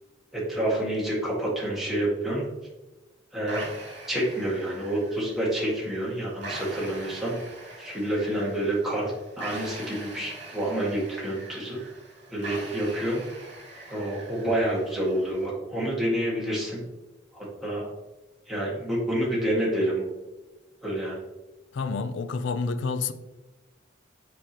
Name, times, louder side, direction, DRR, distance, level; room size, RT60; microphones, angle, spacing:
voice 1, 0.3-2.4 3.3-3.6 4.1-7.4 7.8-9.1 9.4-11.8 12.3-13.2 13.9-16.8 17.3-17.8 18.5-20.0 20.8-21.2, right 1 dB, ahead, 1.8 m, -28 dB
sound 1, 3.5-15.5, right 2 dB, 60° right, 1.8 m, -42 dB
voice 2, 21.7-23.1, left 4 dB, 65° left, 0.4 m, -29 dB
6.9 x 5.0 x 2.9 m
head